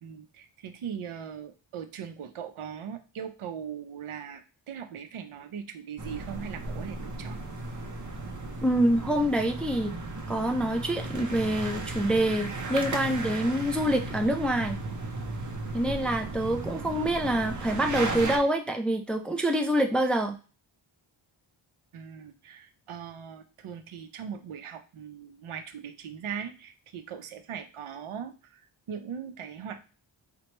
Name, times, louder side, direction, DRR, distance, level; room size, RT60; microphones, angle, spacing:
voice 1, 0.0-7.4 21.9-28.6 28.9-29.8, right 7 dB, 85° right, 8 dB, 0.7 m, -40 dB
sound 1, 6.0-18.4, right 2 dB, 40° right, 0.6 m, -35 dB
voice 2, 8.6-9.9 10.3-14.8 15.7-20.4, right 1 dB, ahead, 5 dB, 0.3 m, -26 dB
4.4 x 2.2 x 3.0 m, 0.34 s
wide cardioid pair, 105°, 48 cm